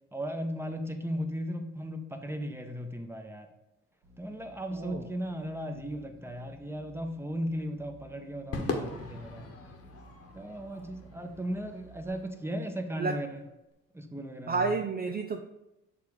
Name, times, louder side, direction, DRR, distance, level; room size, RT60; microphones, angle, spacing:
voice 1, 0.1-3.5 4.2-9.5 10.3-13.4 13.9-14.7, equal, 5° right, 5 dB, 1.0 m, -36 dB
sound 1, 4.0-12.1, right 2 dB, 70° right, 1.6 m, -56 dB
voice 2, 4.7-5.0 13.0-13.2 14.5-15.4, right 4 dB, 30° right, 4 dB, 0.5 m, -30 dB
Crowd / Fireworks, 8.5-13.0, left 3 dB, 45° left, 1.3 m, -40 dB
6.8 x 3.5 x 4.8 m, 0.93 s
hypercardioid pair, 50°, 34 cm